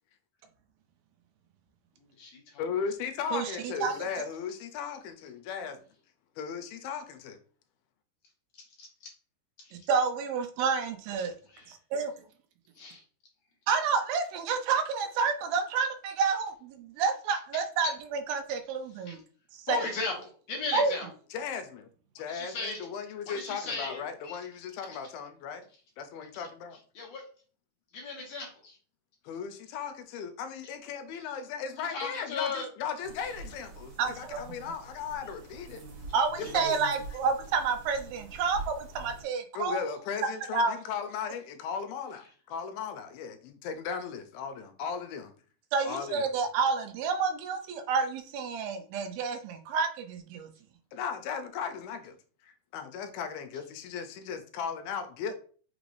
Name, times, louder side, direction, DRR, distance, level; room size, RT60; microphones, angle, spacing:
voice 1, 2.0-2.6 8.5-8.9 9.6-9.9 11.5-11.7 12.7-13.0 17.5-17.9 19.1-19.2 19.7-21.1 22.3-22.9 23.2-24.4 24.8-25.0 26.9-27.2 27.9-28.8 30.1-30.2 31.1-31.3 31.8-32.6 33.2-33.3 36.4-36.5 38.5-38.6, left 4 dB, 65° left, 1.7 m, -37 dB
voice 2, 2.6-5.9 6.4-7.4 21.3-21.9 22.2-25.7 26.0-26.8 29.3-35.8 36.4-36.8 39.5-45.3 45.8-46.3 50.9-52.2 52.4-55.3, left 6 dB, 85° left, 2.4 m, -37 dB
voice 3, 3.3-4.3 9.9-11.3 11.7-12.1 13.7-19.2 19.7-19.8 20.7-20.9 34.0-34.4 36.1-39.8 40.2-40.8 45.7-50.5, right 5 dB, 80° right, 2.4 m, -29 dB
sound 1, 33.0-39.2, right 3 dB, 65° right, 2.1 m, -45 dB
6.0 x 3.2 x 2.5 m
omnidirectional pair, 4.3 m